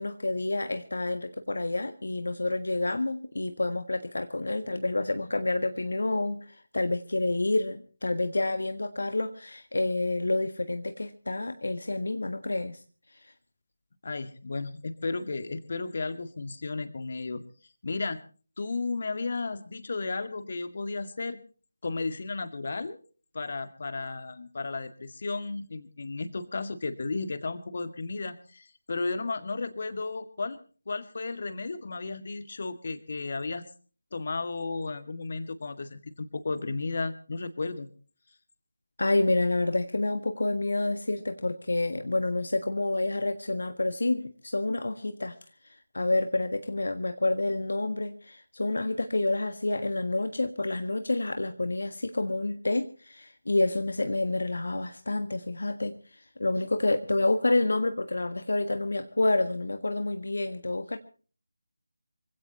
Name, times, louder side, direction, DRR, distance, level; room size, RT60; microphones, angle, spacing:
voice 1, 0.0-12.8 13.1-13.3 39.0-45.4 45.6-61.0, left 2 dB, 65° left, 8 dB, 1.5 m, -28 dB
voice 2, 14.0-17.4 17.8-18.2 18.6-21.4 21.8-23.0 23.3-30.6 30.9-33.6 34.1-37.9, left 3 dB, 45° left, 9 dB, 2.0 m, -34 dB
26.0 x 16.5 x 2.9 m, 0.40 s
figure-of-eight pair, 160°, 0 cm